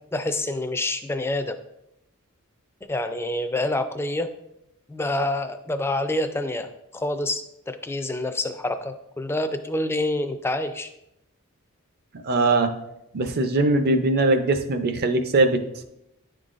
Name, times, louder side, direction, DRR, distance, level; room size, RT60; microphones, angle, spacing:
voice 1, 0.0-1.6 2.9-4.3 4.9-10.9, left 1 dB, 10° left, 7 dB, 0.3 m, -27 dB
voice 2, 12.2-12.7 13.1-15.6, right 2 dB, 45° right, 8 dB, 0.5 m, -21 dB
10.0 x 3.9 x 2.5 m, 0.82 s
head